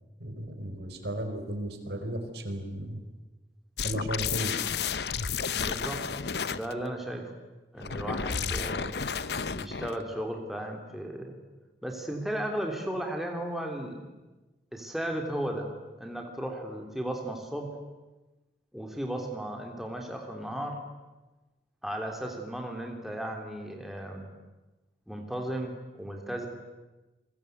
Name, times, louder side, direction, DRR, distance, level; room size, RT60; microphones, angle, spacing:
voice 1, 0.2-3.0 3.8-4.6, right 1 dB, 75° right, 7 dB, 4.4 m, -34 dB
sound 1, 3.8-6.7 7.8-10.0, left 6 dB, 75° left, 0.9 m, -32 dB
voice 2, 5.6-6.1 6.5-7.3 7.7-9.0 9.5-11.3 11.8-14.0 14.7-15.7 16.0-17.8 18.7-20.8 21.8-24.3 25.1-26.5, right 1 dB, ahead, 2 dB, 3.4 m, -35 dB
29.5 x 23.0 x 8.1 m, 1.1 s
head